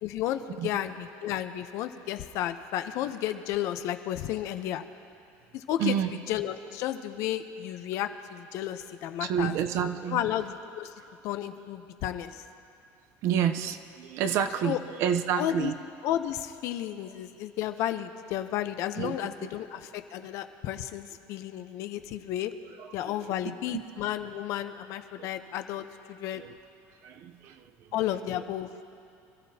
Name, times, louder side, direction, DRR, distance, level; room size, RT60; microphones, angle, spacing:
voice 1, 0.0-4.8 5.5-9.6 10.1-10.9 11.2-12.4 14.6-14.8 15.4-15.7 16.0-22.5 22.9-26.4 27.9-28.7, left 12 dB, 55° left, 8 dB, 0.8 m, -32 dB
voice 2, 5.8-6.1 9.2-10.2 13.2-15.8 19.0-19.2 22.8-23.3 23.7-23.8 25.2-25.3 26.3-26.5 27.0-27.6, right 8 dB, 50° right, 9 dB, 0.8 m, -29 dB
27.0 x 14.5 x 2.9 m, 2.6 s
cardioid pair, 160°, 6 cm